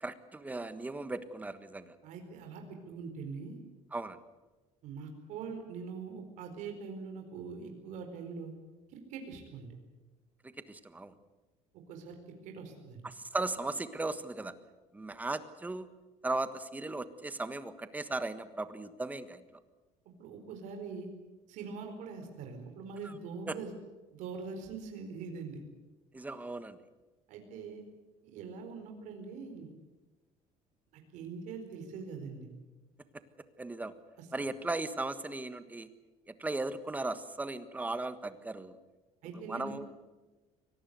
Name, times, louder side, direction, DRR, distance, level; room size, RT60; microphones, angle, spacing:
voice 1, 0.0-1.9 3.9-4.2 10.4-11.1 13.0-14.5 14.9-15.9 16.2-19.4 23.0-23.1 23.5-23.6 26.1-26.8 33.6-33.9 34.3-35.9 36.3-38.7 39.3-39.9, right 2 dB, 10° right, 12 dB, 1.5 m, -37 dB
voice 2, 2.0-3.6 4.8-8.5 8.9-9.7 11.9-13.0 20.2-21.1 21.5-23.7 24.1-25.6 27.3-27.8 28.3-29.7 30.9-32.5 34.2-34.5 39.2-39.8, right 5 dB, 70° right, 4 dB, 4.6 m, -43 dB
24.0 x 19.0 x 8.1 m, 1.2 s
cardioid pair, 135°, 13 cm